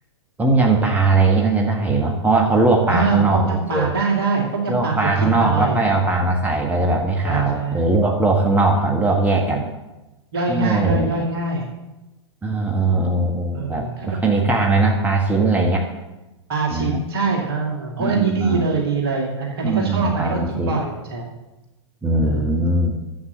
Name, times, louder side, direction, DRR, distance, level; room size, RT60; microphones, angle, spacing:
voice 1, 0.4-3.9 4.7-9.7 10.5-11.1 12.4-15.9 16.7-17.0 18.0-18.7 19.6-20.8 22.0-23.0, right 3 dB, 10° right, 0 dB, 1.5 m, -19 dB
voice 2, 2.9-5.8 7.2-7.9 10.3-11.7 13.5-14.2 16.5-21.3 22.2-22.5, right 4 dB, 55° right, 0 dB, 2.5 m, -24 dB
11.0 x 8.1 x 7.7 m, 1.0 s
figure-of-eight pair, 105°, 15 cm